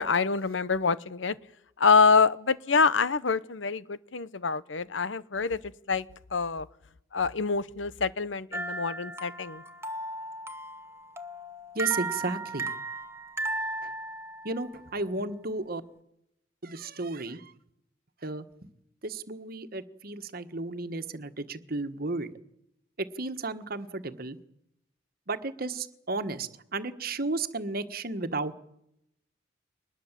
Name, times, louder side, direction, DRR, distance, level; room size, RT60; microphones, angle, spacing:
voice 1, 0.0-1.3 1.8-5.6 5.9-6.1 6.3-6.7 7.1-9.6, left 5 dB, 85° left, 16 dB, 0.9 m, -25 dB
sound 1, 8.5-14.8, right 2 dB, 15° right, 1.4 m, -36 dB
voice 2, 11.7-12.7 13.8-13.9 14.4-15.8 16.6-17.5 18.2-18.7 19.0-22.3 23.0-24.4 25.3-28.6, right 3 dB, 50° right, 10 dB, 1.5 m, -33 dB
23.5 x 20.0 x 7.5 m, 0.77 s
head